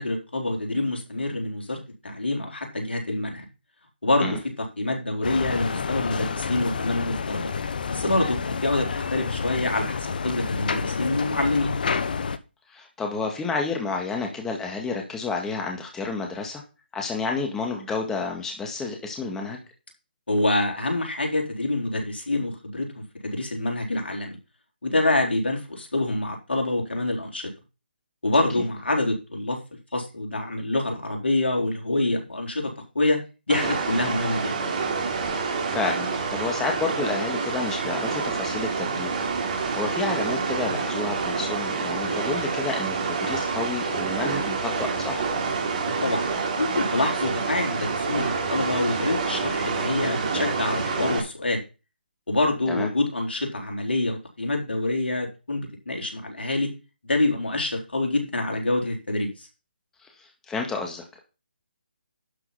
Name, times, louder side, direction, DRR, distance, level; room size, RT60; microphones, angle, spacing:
voice 1, 0.0-3.4 4.0-4.4 4.8-7.5 7.9-11.7 20.3-24.4 24.8-27.5 28.2-29.6 29.9-33.2 33.5-34.6 46.0-46.3 46.6-51.6 52.3-56.7 57.0-59.5, left 2 dB, 80° left, 2 dB, 4.0 m, -26 dB
sound 1, 5.2-12.4, left 5 dB, 55° left, 1.0 m, -29 dB
voice 2, 12.7-16.6 16.9-19.6 28.6-28.7 35.7-39.1 39.5-45.3 52.7-52.9 60.0-61.2, left 4 dB, 10° left, 2 dB, 1.9 m, -30 dB
sound 2, 33.5-51.2, right 4 dB, 40° right, 3.4 m, -27 dB
12.0 x 5.8 x 5.6 m, 0.30 s
figure-of-eight pair, 150°, 6 cm